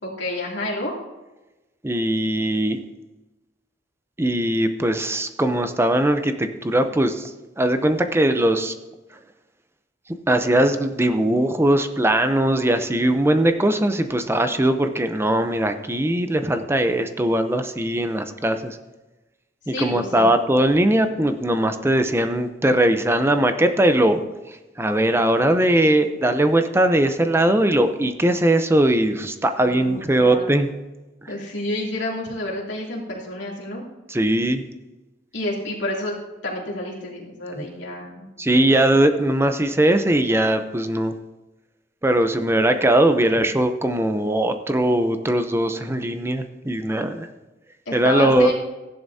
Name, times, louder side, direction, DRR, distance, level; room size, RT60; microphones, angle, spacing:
voice 1, 0.0-0.9 19.7-20.3 29.6-30.5 31.3-33.8 35.3-36.1 36.4-38.3 47.9-48.5, left 1 dB, 75° left, -4 dB, 2.8 m, -29 dB
voice 2, 1.8-2.8 4.2-7.3 7.6-8.7 10.3-18.8 19.7-24.2 24.8-30.7 34.1-34.6 37.6-37.7 38.4-41.2 42.0-47.3 47.9-48.5, right 1 dB, 15° right, 8 dB, 0.6 m, -20 dB
15.5 x 10.5 x 2.8 m, 1.1 s
head